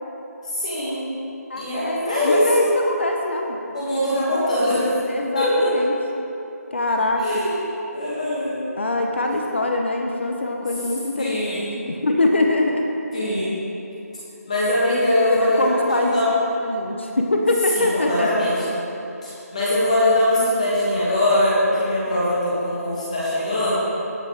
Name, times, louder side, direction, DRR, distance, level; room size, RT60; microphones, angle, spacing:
voice 1, 0.4-1.1 1.6-2.7 3.7-5.0 5.3-5.7 7.2-7.5 7.9-8.6 10.6-10.7 11.2-11.8 13.1-13.6 14.5-16.3 17.7-18.7 19.2-23.7, left 1 dB, 25° left, -9 dB, 2.3 m, -22 dB
voice 2, 1.5-3.6 5.1-5.9 6.7-7.2 8.8-12.9 15.3-16.2 16.6-18.3, left 2 dB, 45° left, 2 dB, 0.8 m, -23 dB
16.5 x 7.4 x 3.5 m, 2.9 s
figure-of-eight pair, 180°, 9 cm